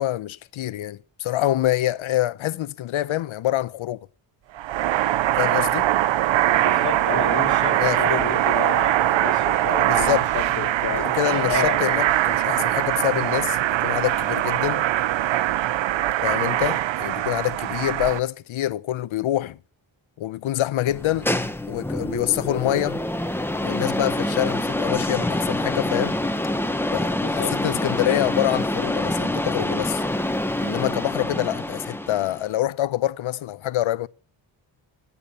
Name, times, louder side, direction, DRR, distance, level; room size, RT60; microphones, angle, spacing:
voice 1, 0.0-4.1 5.4-5.9 7.8-8.3 9.8-10.3 10.9-14.8 16.2-19.6 20.2-21.3 21.7-23.0 23.6-26.2 26.9-30.0 30.6-34.1, left 13 dB, 90° left, 0.8 m, -26 dB
sound 1, 4.5-18.2, right 13 dB, 70° right, 0.6 m, -22 dB
voice 2, 6.6-11.9 27.2-28.2, left 7 dB, 40° left, 1.2 m, -31 dB
sound 2, 20.9-32.5, left 1 dB, 5° left, 1.0 m, -26 dB
17.0 x 8.5 x 7.0 m
cardioid pair, 105°, 47 cm